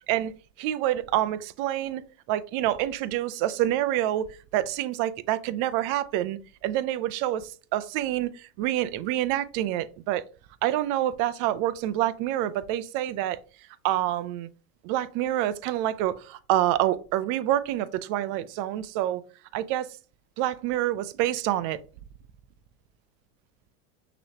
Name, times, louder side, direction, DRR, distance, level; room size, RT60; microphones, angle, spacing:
voice 1, 0.6-2.0 2.3-10.2 10.6-13.4 13.8-14.5 14.8-19.2 19.5-20.0 20.4-21.8, right 13 dB, 45° right, 0.5 m, -27 dB
6.1 x 3.0 x 2.9 m
hypercardioid pair, 105°, 47 cm